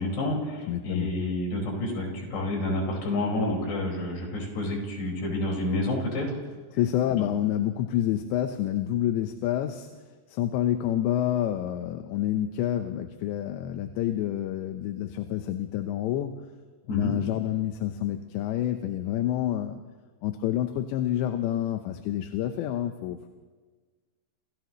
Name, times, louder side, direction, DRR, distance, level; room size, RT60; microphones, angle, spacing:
voice 1, 0.0-6.3 7.1-7.3 16.9-17.2, left 1 dB, 60° left, -1 dB, 7.1 m, -29 dB
voice 2, 0.7-1.1 6.7-9.9 10.3-16.4 16.9-19.8 20.2-23.4, left 12 dB, 80° left, 6 dB, 3.1 m, -28 dB
29.5 x 28.0 x 3.1 m, 1.4 s
omnidirectional pair, 5.2 m